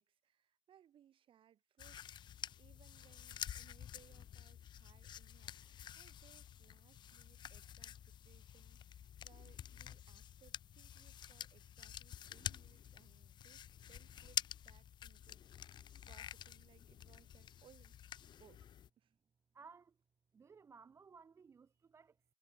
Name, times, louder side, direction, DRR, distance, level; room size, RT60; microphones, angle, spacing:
voice 1, 0.0-5.5 6.0-18.0 18.4-18.6 19.0-19.1, right 10 dB, 55° right, 5.4 m, -68 dB
sound 1, 1.8-18.9, left 10 dB, 45° left, 0.6 m, -49 dB
voice 2, 19.5-20.0 20.3-22.3, right 5 dB, 25° right, 0.5 m, -59 dB
cardioid pair, 145°, 10 cm